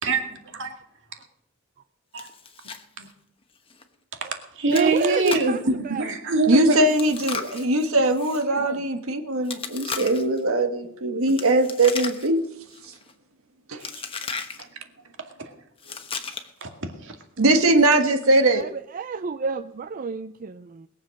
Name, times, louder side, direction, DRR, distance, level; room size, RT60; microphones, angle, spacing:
voice 1, 0.0-0.7 2.1-2.3 3.0-3.1 4.6-6.9 8.6-8.7 14.2-14.3 15.9-16.0 16.6-16.7 17.0-17.1, right 3 dB, 60° right, 4 dB, 2.1 m, -24 dB
Chewing mastication, 2.2-2.8 3.1-3.2 3.7-3.8 4.7-5.6 6.9-8.4 9.4-10.4 11.3-12.4 12.7-13.1 13.8-14.6 15.8-16.6, left 5 dB, 25° left, 1.1 m, -35 dB
voice 2, 4.7-6.1 8.5-8.8 18.5-20.9, right 5 dB, 40° right, 11 dB, 0.4 m, -29 dB
voice 3, 6.5-12.5 13.7-13.9 17.4-18.7, right 2 dB, 80° right, 6 dB, 1.4 m, -21 dB
21.0 x 7.5 x 6.4 m, 0.78 s
head